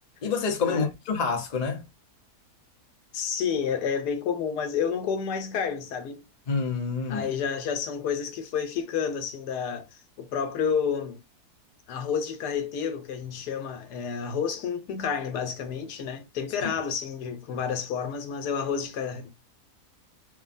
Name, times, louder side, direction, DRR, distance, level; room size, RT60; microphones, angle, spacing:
voice 1, 0.2-1.8 6.5-7.3 16.6-16.7, left 5 dB, 55° left, 0.4 m, -27 dB
voice 2, 3.1-6.2 7.1-11.2 11.9-19.3, left 7 dB, 85° left, 1.2 m, -30 dB
3.3 x 2.2 x 2.5 m
omnidirectional pair, 1.7 m